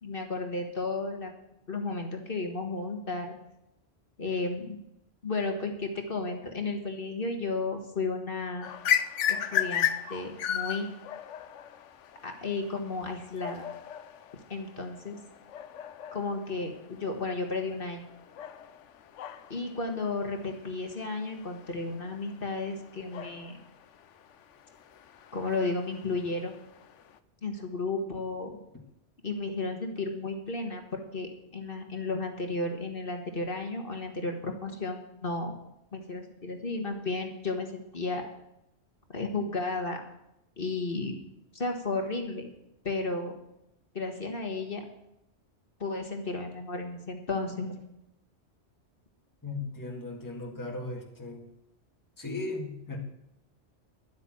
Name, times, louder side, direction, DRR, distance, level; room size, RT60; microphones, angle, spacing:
voice 1, 0.0-1.3 1.7-3.4 4.2-4.8 5.2-8.7 9.3-10.9 12.2-13.7 14.5-15.2 16.1-18.1 19.5-23.6 25.3-26.5 27.4-28.6 29.2-35.5 35.9-38.3 39.1-40.0 40.6-41.2 41.5-42.5 42.8-43.3 43.9-44.9 45.8-47.8, left 3 dB, 50° left, 3 dB, 1.8 m, -33 dB
sound 1, 8.6-27.2, left 9 dB, 85° left, 1.0 m, -36 dB
voice 2, 49.4-51.5 52.2-53.0, left 2 dB, 15° left, -1 dB, 1.9 m, -37 dB
12.0 x 8.4 x 7.7 m, 0.84 s
omnidirectional pair, 1.2 m